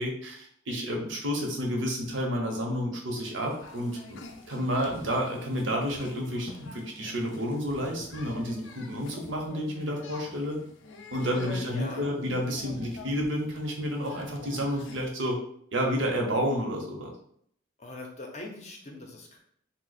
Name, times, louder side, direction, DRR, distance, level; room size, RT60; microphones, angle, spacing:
voice 1, 0.0-4.2 4.5-10.6 11.1-15.4 15.7-17.1, equal, 80° right, 0 dB, 0.8 m, -30 dB
sound 1, 3.2-15.1, left 3 dB, 90° left, 0.4 m, -46 dB
voice 2, 11.5-12.3 17.8-19.4, left 2 dB, 35° left, 1 dB, 0.5 m, -42 dB
2.8 x 2.0 x 4.0 m, 0.66 s
head